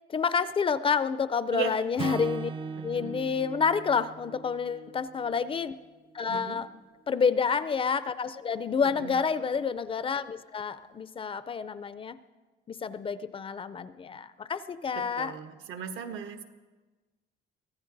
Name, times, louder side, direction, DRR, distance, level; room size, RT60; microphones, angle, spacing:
voice 1, 0.1-2.5 2.8-5.7 6.1-6.7 7.1-12.2 12.7-15.3, left 6 dB, 25° left, 14 dB, 0.5 m, -29 dB
Acoustic guitar / Strum, 2.0-6.3, right 5 dB, 25° right, 0.5 m, -39 dB
voice 2, 2.7-3.1 6.3-6.6 8.8-9.2 14.9-16.4, right 6 dB, 75° right, 6 dB, 1.5 m, -37 dB
23.5 x 15.0 x 4.0 m, 1.3 s
cardioid pair, 140°, 20 cm